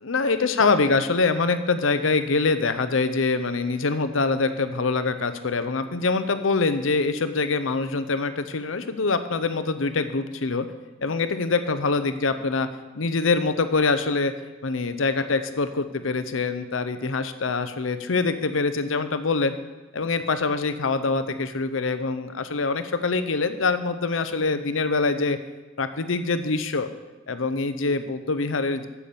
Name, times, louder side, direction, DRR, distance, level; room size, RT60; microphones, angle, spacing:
voice 1, 0.0-10.7 11.0-12.7 13.0-14.3 14.6-19.5 19.9-25.4 25.8-26.9 27.3-28.9, left 3 dB, 80° left, 10 dB, 0.8 m, -24 dB
9.3 x 7.1 x 7.1 m, 1.2 s
head